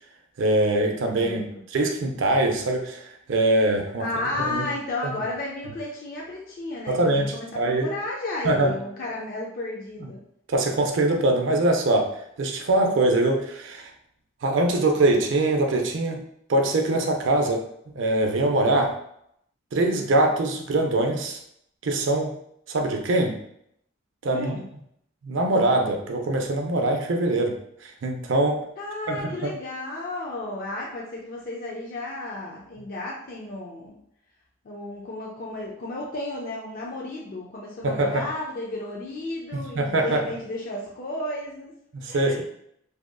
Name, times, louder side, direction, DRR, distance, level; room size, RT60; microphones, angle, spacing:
voice 1, 0.4-1.4 1.7-4.1 4.3-4.7 6.9-7.9 8.4-8.7 10.0-10.1 10.5-12.1 12.4-13.9 14.4-16.2 16.5-17.6 18.0-18.9 19.7-21.4 21.8-22.3 22.7-23.4 24.2-24.7 25.2-28.6 29.1-29.2 29.4-29.5 37.8-38.2 39.5-40.2 42.0-42.4, right 2 dB, 65° right, 3 dB, 0.4 m, -23 dB
voice 2, 4.0-10.2 24.3-24.6 28.8-34.0 34.6-41.7 42.1-42.4, left 2 dB, 45° left, -3 dB, 0.3 m, -33 dB
2.7 x 2.5 x 2.2 m, 0.72 s
head